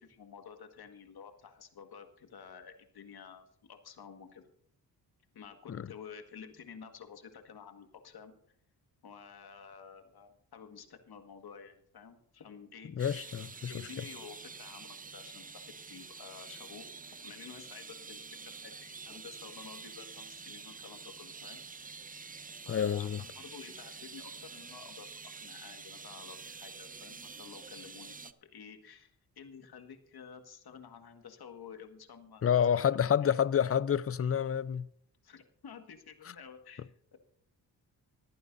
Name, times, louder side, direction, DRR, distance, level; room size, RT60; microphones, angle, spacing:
voice 1, 0.0-4.4 5.3-8.4 9.0-13.3 13.7-21.6 22.6-25.1 25.4-32.9 33.2-33.4 35.2-37.2, left 6 dB, 65° left, 1.8 m, -51 dB
voice 2, 13.0-13.7 22.7-23.2 32.4-34.9, left 8 dB, 35° left, 0.6 m, -28 dB
sound 1, 13.0-28.3, right 5 dB, 20° right, 0.6 m, -47 dB
26.5 x 9.4 x 2.7 m
cardioid pair, 60°, 40 cm